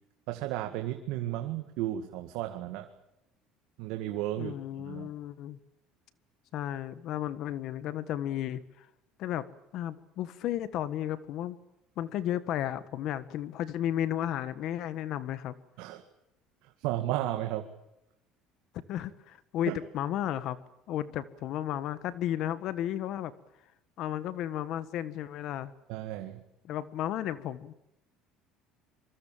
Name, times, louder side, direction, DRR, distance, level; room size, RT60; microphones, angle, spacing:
voice 1, 0.3-2.9 3.8-5.1 15.8-16.0 16.6-17.7 19.7-19.8 25.9-26.4, right 14 dB, 80° right, 6 dB, 2.1 m, -34 dB
voice 2, 4.4-5.6 6.5-8.9 9.2-9.5 9.7-11.6 12.0-15.5 18.7-20.6 20.9-23.3 24.0-25.7 26.7-27.7, left 11 dB, 60° left, 15 dB, 1.5 m, -33 dB
25.5 x 24.0 x 7.5 m, 0.84 s
cardioid pair, 125°, 0 cm